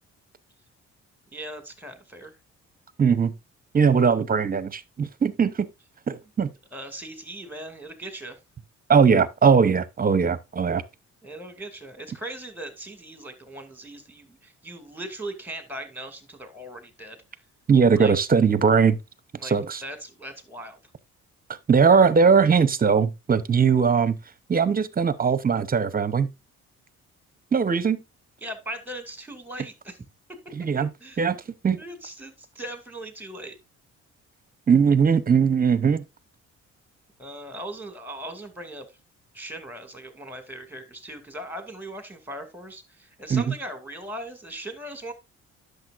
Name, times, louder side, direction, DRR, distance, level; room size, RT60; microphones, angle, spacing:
voice 1, 1.3-2.3 6.7-8.4 11.2-17.2 18.0-18.1 19.4-19.5 19.8-20.8 28.4-30.0 30.7-31.2 31.8-33.6 37.2-38.9 39.3-45.1, right 1 dB, 5° right, 2.3 m, -39 dB
voice 2, 3.0-3.3 3.7-5.7 6.1-6.5 8.9-10.8 17.7-19.0 19.4-19.8 21.7-24.2 24.5-26.3 27.5-28.0 30.6-30.9 31.2-31.4 31.6-31.8 34.7-36.0 43.3-43.5, right 6 dB, 30° right, 0.8 m, -20 dB
10.5 x 6.7 x 2.5 m
cardioid pair, 90°, 30 cm